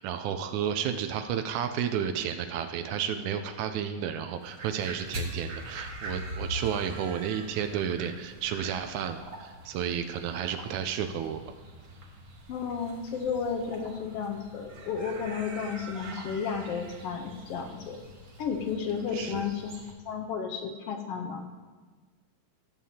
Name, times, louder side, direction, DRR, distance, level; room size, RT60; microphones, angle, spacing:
voice 1, 0.0-11.5 19.1-19.4, right 8 dB, 85° right, 7 dB, 2.0 m, -32 dB
sound 1, 4.3-19.9, right 1 dB, 50° right, 1.8 m, -43 dB
voice 2, 12.5-18.0 18.4-19.8 20.1-21.6, left 6 dB, 70° left, 4 dB, 1.5 m, -33 dB
18.0 x 7.5 x 2.8 m, 1.4 s
omnidirectional pair, 3.4 m